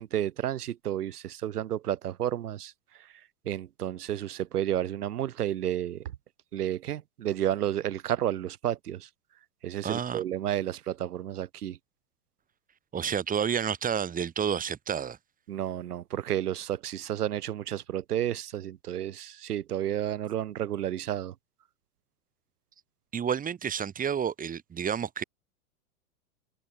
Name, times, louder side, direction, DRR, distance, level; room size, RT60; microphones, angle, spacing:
voice 1, 0.0-6.1 6.5-9.1 9.6-11.8 15.5-21.3, right 11 dB, 75° right, 7.1 m, -31 dB
voice 2, 9.8-10.2 12.9-15.2 23.1-25.2, right 8 dB, 20° right, 1.6 m, -30 dB
hypercardioid pair, 115°, 46 cm